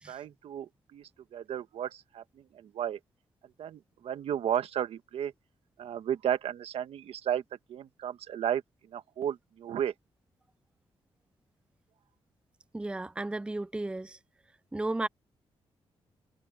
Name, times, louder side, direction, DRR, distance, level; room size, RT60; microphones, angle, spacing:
voice 1, 0.1-2.2 2.5-3.0 3.6-5.3 5.8-7.4 7.7-8.6 8.9-9.9, right 9 dB, 85° right, 1.4 m, -33 dB
voice 2, 12.7-14.2 14.7-15.1, right 2 dB, 10° right, 0.5 m, -34 dB
cardioid pair, 105°, 10 cm